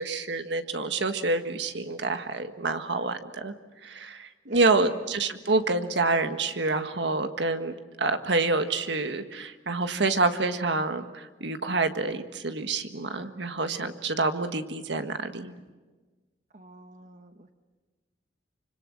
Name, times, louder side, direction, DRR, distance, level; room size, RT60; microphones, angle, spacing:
voice 1, 0.0-3.5 3.8-15.5, right 3 dB, 70° right, 8 dB, 1.6 m, -27 dB
voice 2, 16.5-17.5, right 1 dB, 45° right, 7 dB, 1.2 m, -48 dB
26.0 x 25.5 x 7.7 m, 1.3 s
head